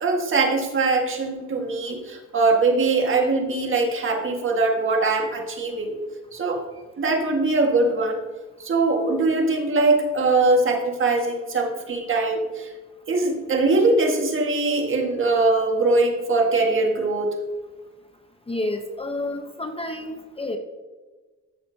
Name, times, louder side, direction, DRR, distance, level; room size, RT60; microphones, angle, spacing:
voice 1, 0.0-5.9 6.3-6.6 7.0-8.2 8.6-12.7 13.1-17.3, right 3 dB, 40° right, 2 dB, 1.8 m, -22 dB
voice 2, 18.5-20.6, left 2 dB, 20° left, 5 dB, 0.9 m, -30 dB
13.5 x 6.2 x 2.8 m, 1.3 s
cardioid pair, 90°, 30 cm